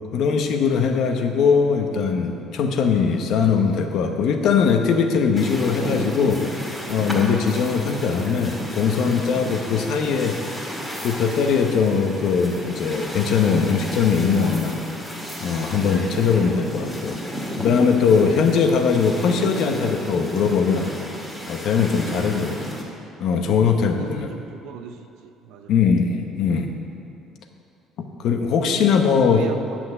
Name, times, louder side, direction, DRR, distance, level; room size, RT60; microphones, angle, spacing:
voice 1, 0.1-10.4 11.0-14.8 15.4-17.2 17.6-20.9 21.5-22.7 23.2-24.3 25.7-26.7 28.0-29.4, left 6 dB, 60° left, 5 dB, 1.0 m, -20 dB
sound 1, 5.4-22.8, equal, 5° left, 1.9 m, -32 dB
voice 2, 16.0-16.5 22.2-22.6 23.9-25.0 25.4-25.7 28.6-29.0 29.3-29.8, right 7 dB, 80° right, 7 dB, 0.8 m, -36 dB
10.0 x 6.2 x 8.0 m, 2.6 s
cardioid pair, 140°, 0 cm